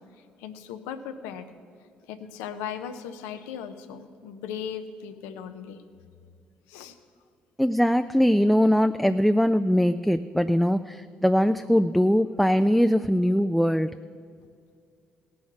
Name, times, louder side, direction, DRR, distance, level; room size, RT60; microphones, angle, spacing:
voice 1, 0.4-1.5 2.1-5.8 6.7-6.9, left 8 dB, 90° left, 9 dB, 0.7 m, -37 dB
voice 2, 7.6-13.9, equal, ahead, 9 dB, 0.3 m, -21 dB
17.0 x 6.4 x 5.8 m, 2.3 s
supercardioid pair, 65°, 4 cm